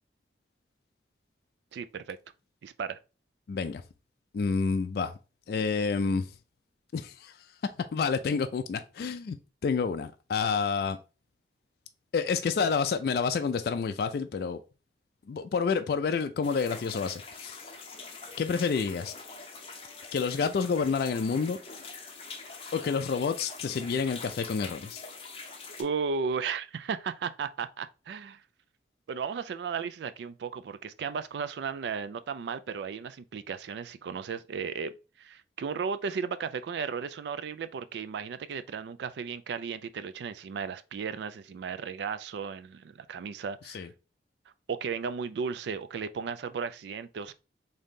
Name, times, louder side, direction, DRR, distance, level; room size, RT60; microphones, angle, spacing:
voice 1, 1.7-2.2 2.6-3.0 25.8-28.4 29.1-34.9 35.2-43.9 44.7-47.3, right 6 dB, 75° right, 0.3 m, -35 dB
voice 2, 3.5-3.8 4.3-5.1 5.5-6.3 6.9-7.4 7.9-9.4 9.6-11.0 12.1-14.6 15.3-17.6 18.4-19.1 20.1-21.6 22.7-25.0 43.7-43.9, left 5 dB, 55° left, 0.3 m, -29 dB
sound 1, 16.4-25.8, left 4 dB, 30° left, 0.7 m, -44 dB
3.8 x 2.7 x 3.5 m
head